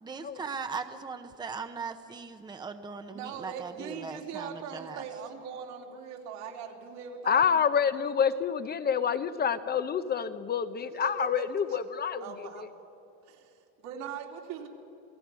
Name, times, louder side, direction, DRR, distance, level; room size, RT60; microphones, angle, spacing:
voice 1, 0.0-5.0, right 5 dB, 10° right, 8 dB, 0.8 m, -39 dB
voice 2, 3.1-7.6 10.9-11.8 12.2-12.6 13.3-14.7, right 7 dB, 75° right, 1 dB, 3.4 m, -41 dB
voice 3, 7.3-12.3, left 7 dB, 25° left, 11 dB, 0.7 m, -27 dB
27.5 x 18.5 x 6.3 m, 2.8 s
cardioid pair, 135°, 37 cm